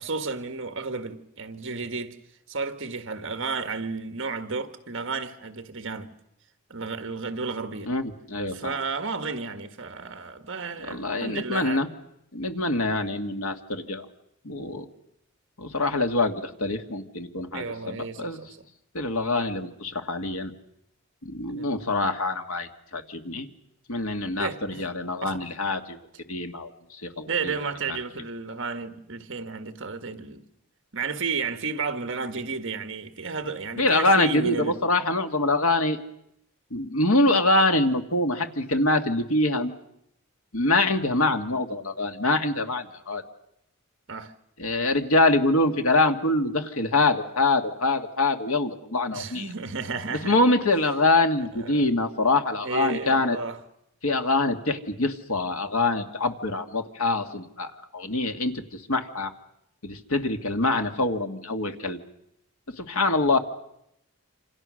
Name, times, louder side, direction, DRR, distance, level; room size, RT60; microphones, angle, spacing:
voice 1, 0.0-2.2 2.5-6.1 6.7-7.9 8.5-11.9 17.5-18.7 21.5-21.7 24.4-24.8 25.2-25.5 27.3-30.4 30.9-34.8 44.1-44.3 49.1-50.4 51.5-51.9 52.6-53.6, right 4 dB, 60° right, 1.7 m, -32 dB
voice 2, 8.3-8.8 10.9-11.9 12.3-14.1 14.4-14.9 15.6-18.4 18.9-20.5 21.2-23.5 23.9-26.0 26.3-27.5 27.9-28.0 33.8-36.0 36.7-39.7 40.5-43.2 44.6-49.5 50.2-53.4 54.0-59.3 59.8-62.0 62.8-63.4, left 2 dB, 75° left, 2.0 m, -25 dB
27.5 x 27.0 x 6.4 m
head